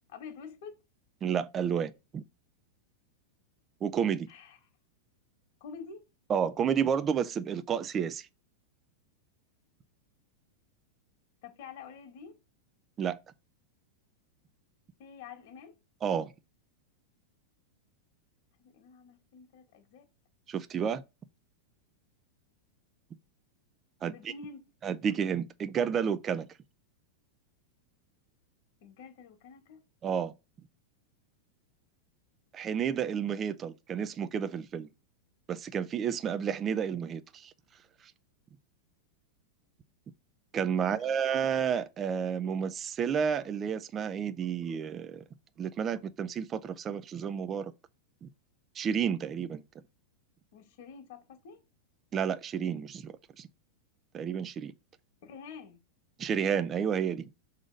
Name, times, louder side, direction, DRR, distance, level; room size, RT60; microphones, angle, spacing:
voice 1, 0.1-0.7 4.3-4.6 5.6-6.0 11.4-12.4 15.0-15.8 18.6-20.1 24.0-24.6 28.8-29.8 40.8-41.2 50.5-51.6 55.2-55.8, left 6 dB, 55° left, 2.2 m, -48 dB
voice 2, 1.2-2.2 3.8-4.3 6.3-8.3 13.0-13.2 16.0-16.3 20.5-21.0 24.0-24.3 24.8-26.5 30.0-30.3 32.5-34.9 35.5-37.5 38.0-38.1 40.5-45.2 45.6-47.7 48.2-48.3 48.7-49.6 52.1-53.5 54.1-54.7 56.2-57.3, right 7 dB, 20° right, 0.5 m, -31 dB
6.4 x 4.0 x 5.0 m
supercardioid pair, 155°, 0 cm